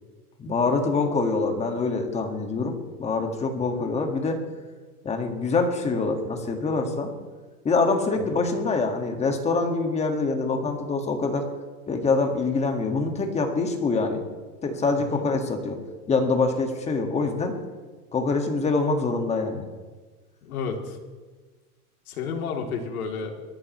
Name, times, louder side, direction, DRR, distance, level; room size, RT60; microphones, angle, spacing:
voice 1, 0.4-4.4 5.0-7.1 7.6-11.5 11.9-14.2 14.6-15.8 16.1-17.5 18.1-19.6, left 3 dB, 15° left, 4 dB, 1.8 m, -25 dB
voice 2, 14.9-15.2 20.4-21.0 22.1-23.3, left 5 dB, 70° left, 2 dB, 3.1 m, -32 dB
22.0 x 14.0 x 3.2 m, 1.3 s
hypercardioid pair, 140°, 45 cm